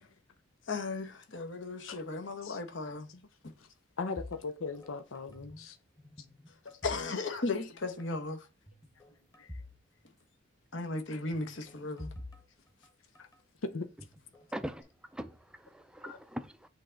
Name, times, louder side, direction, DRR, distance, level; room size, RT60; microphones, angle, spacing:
voice 1, 0.7-3.1 6.8-8.4 10.7-12.1, left 3 dB, 60° left, 1.0 m, -36 dB
voice 2, 4.0-5.8 9.4-9.5 11.1-11.2 13.2-13.3 13.6-13.9 16.0-16.2, left 4 dB, 85° left, 0.7 m, -38 dB
sound 1, 4.2-5.7 6.0-7.6 7.8-8.1 8.7-9.8 10.0-10.1 11.3-13.4 14.0-14.8, left 1 dB, 15° left, 1.2 m, -49 dB
voice 3, 14.5-16.7, equal, 5° right, 0.4 m, -42 dB
8.3 x 3.4 x 3.8 m
head